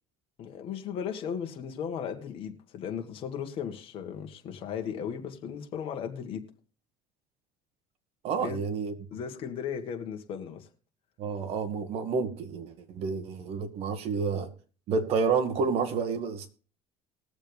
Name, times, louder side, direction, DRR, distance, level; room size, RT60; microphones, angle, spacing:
voice 1, 0.4-6.5 8.4-8.6 9.1-10.7, left 7 dB, 45° left, 1.9 m, -36 dB
voice 2, 8.2-8.9 11.2-14.5 14.9-16.5, right 5 dB, 55° right, 1.9 m, -29 dB
20.5 x 7.3 x 3.5 m
cardioid pair, 140°, 13 cm